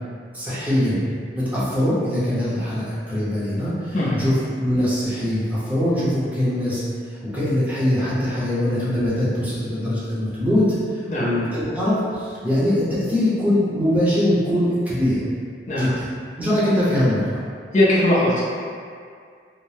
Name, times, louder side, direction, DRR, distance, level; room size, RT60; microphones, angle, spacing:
voice 1, 0.3-1.0 1.3-4.3 4.6-6.8 7.2-10.6 11.2-15.2 15.8-16.1 16.4-17.2, left 1 dB, 10° right, -11 dB, 0.7 m, -22 dB
voice 2, 3.9-4.2 11.1-11.3 15.7-15.9 17.7-18.4, left 1 dB, 45° left, -7 dB, 0.5 m, -19 dB
2.7 x 2.1 x 3.2 m, 2.1 s
head